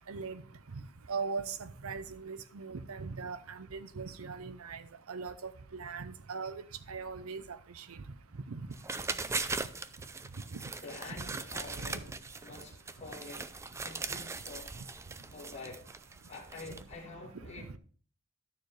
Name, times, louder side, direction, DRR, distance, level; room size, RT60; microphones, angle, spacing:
voice 1, 0.1-0.4 1.1-4.8 5.1-6.6 6.9-8.0 8.5-8.6 10.5-10.6 11.2-11.3, right 5 dB, 85° right, 0.7 m, -40 dB
sound 1, 8.7-16.9, right 4 dB, 15° right, 0.3 m, -40 dB
voice 2, 10.8-12.1 12.4-14.8 15.3-15.9 16.3-17.7, left 3 dB, 30° left, 1.5 m, -47 dB
12.0 x 6.6 x 3.2 m
head